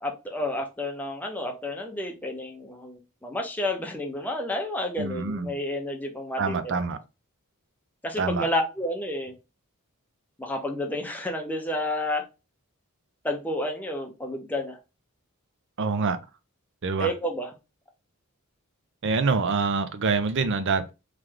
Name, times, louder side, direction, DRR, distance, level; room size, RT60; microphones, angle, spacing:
voice 1, 0.0-6.7 8.0-9.3 10.4-12.2 13.2-14.8 17.0-17.5, left 1 dB, 5° left, 0.8 m, -30 dB
voice 2, 5.0-5.5 6.4-7.0 8.2-8.5 15.8-16.2 16.8-17.1 19.0-20.9, right 4 dB, 55° right, 0.5 m, -25 dB
3.3 x 3.2 x 3.7 m
head